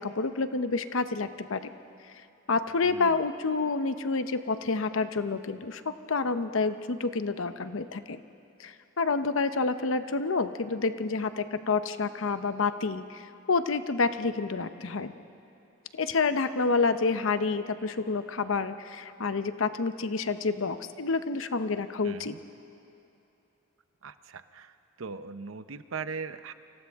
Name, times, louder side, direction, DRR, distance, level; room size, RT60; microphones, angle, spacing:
voice 1, 0.0-1.6 2.5-8.2 8.6-15.1 15.9-22.3, left 4 dB, 75° left, 10 dB, 0.8 m, -28 dB
voice 2, 2.8-3.2 22.0-22.4 24.0-24.7 25.0-26.5, right 5 dB, 80° right, 12 dB, 0.7 m, -39 dB
30.0 x 25.0 x 3.6 m, 2.8 s
head